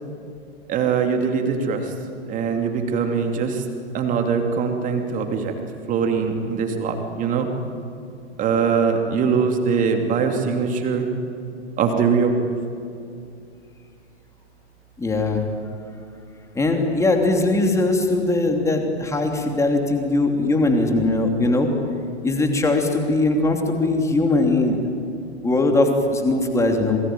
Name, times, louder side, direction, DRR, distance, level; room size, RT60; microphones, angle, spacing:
voice 1, 0.7-1.9 2.3-3.7 3.9-5.5 5.9-7.5 8.4-11.1 11.8-12.6, right 5 dB, 25° right, 4 dB, 3.0 m, -22 dB
voice 2, 15.0-15.5 16.5-21.7 22.2-24.8 25.4-27.0, left 2 dB, 10° left, 3 dB, 3.0 m, -20 dB
27.0 x 22.0 x 9.3 m, 2.5 s
figure-of-eight pair, 105°, 34 cm